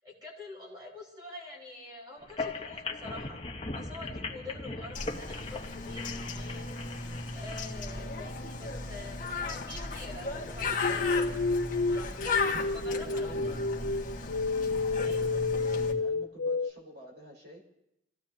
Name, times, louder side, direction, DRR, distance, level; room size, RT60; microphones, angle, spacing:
voice 1, 0.0-3.4 3.7-6.7 7.3-11.3 11.9-12.3 12.6-13.6 15.0-15.3, left 2 dB, 25° right, -4 dB, 5.0 m, -46 dB
sound 1, 2.2-7.6, left 3 dB, 30° left, 1.1 m, -39 dB
Bird, 4.9-15.9, left 3 dB, 45° left, 1.6 m, -35 dB
sound 2, 10.8-16.7, left 3 dB, 80° left, 0.6 m, -30 dB
voice 2, 12.4-13.6 15.0-17.6, equal, 70° right, -2 dB, 5.6 m, -49 dB
28.5 x 16.0 x 2.8 m, 0.83 s
head